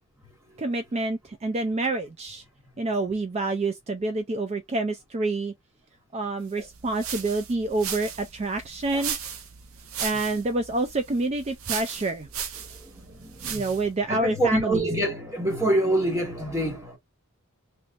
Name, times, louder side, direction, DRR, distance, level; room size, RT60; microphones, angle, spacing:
voice 1, 0.6-2.4 2.8-5.5 6.1-9.2 10.0-12.3 13.4-14.9, right 2 dB, 30° right, 0.4 m, -27 dB
sound 1, 6.6-13.9, right 7 dB, 70° right, 0.7 m, -37 dB
voice 2, 13.2-17.0, right 1 dB, 15° right, 1.3 m, -26 dB
3.2 x 3.1 x 2.4 m
head